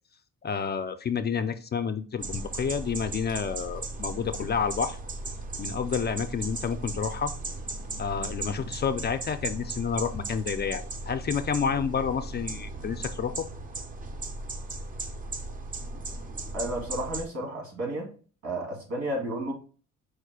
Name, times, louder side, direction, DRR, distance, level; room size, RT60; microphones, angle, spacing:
voice 1, 0.4-5.0 5.6-7.3 8.0-13.5, left 6 dB, 35° left, 9 dB, 0.4 m, -29 dB
sound 1, 2.2-17.3, right 2 dB, 30° right, 0.6 m, -37 dB
voice 2, 16.5-18.1 18.4-19.5, right 1 dB, 70° right, 0 dB, 2.3 m, -32 dB
4.8 x 2.1 x 4.7 m, 0.39 s
cardioid pair, 90°, 30 cm